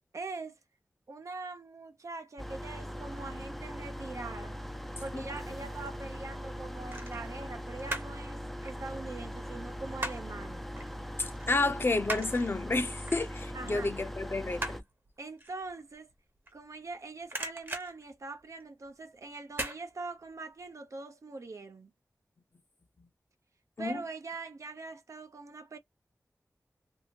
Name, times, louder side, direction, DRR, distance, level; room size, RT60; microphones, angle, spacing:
voice 1, 0.1-0.6 1.1-4.5 5.0-10.6 13.5-13.9 15.2-16.1 16.5-21.9 23.8-25.8, right 3 dB, 65° right, 0.6 m, -42 dB
sound 1, 2.4-14.8, equal, ahead, 0.4 m, -41 dB
sound 2, 5.7-6.0 6.9-8.2 8.5-10.4 10.8-10.9 11.3-16.9 17.2-18.9 19.5-19.8 20.2-20.3, right 1 dB, 40° right, 1.0 m, -40 dB
voice 2, 11.2-14.8 23.8-24.0, left 3 dB, 40° left, 0.7 m, -30 dB
2.7 x 2.5 x 2.8 m
wide cardioid pair, 75°, 6 cm